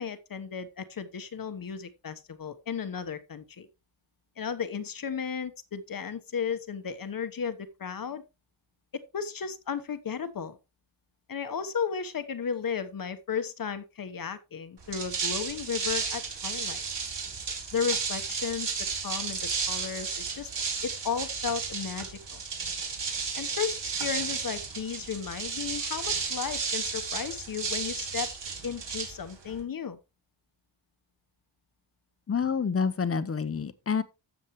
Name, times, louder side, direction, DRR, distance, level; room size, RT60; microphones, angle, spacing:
voice 1, 0.0-3.7 4.4-8.2 8.9-10.6 11.3-16.8 17.7-18.7 19.0-20.5 20.8-22.4 23.4-28.3 28.6-30.0, left 6 dB, 50° left, 1.2 m, -34 dB
sound 1, 14.8-29.6, right 5 dB, 65° right, 3.8 m, -33 dB
voice 2, 32.3-34.0, left 6 dB, 30° left, 0.9 m, -28 dB
13.0 x 7.2 x 3.1 m
wide cardioid pair, 120°, 45 cm